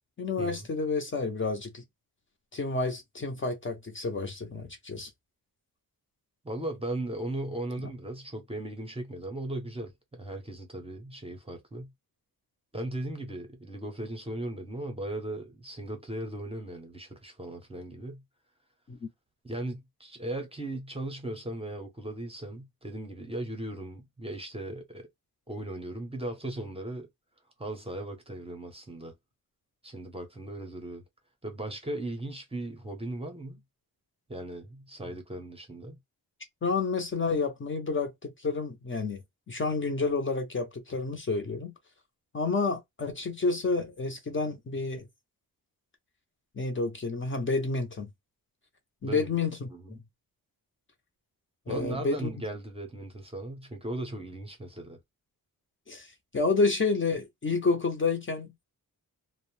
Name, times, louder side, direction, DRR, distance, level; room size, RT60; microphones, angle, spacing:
voice 1, 0.2-1.8 2.5-5.1 18.9-19.1 36.6-39.2 39.5-41.7 42.3-45.1 46.6-48.1 49.0-50.0 51.7-52.3 55.9-58.5, left 3 dB, 30° left, 0.6 m, -29 dB
voice 2, 6.4-11.9 12.7-18.2 19.4-25.1 25.5-27.1 27.6-29.1 29.8-31.0 31.4-33.6 34.3-36.0 49.0-49.3 49.7-50.0 51.7-55.0, right 1 dB, 15° right, 0.6 m, -37 dB
2.5 x 2.1 x 3.0 m
wide cardioid pair, 145°, 38 cm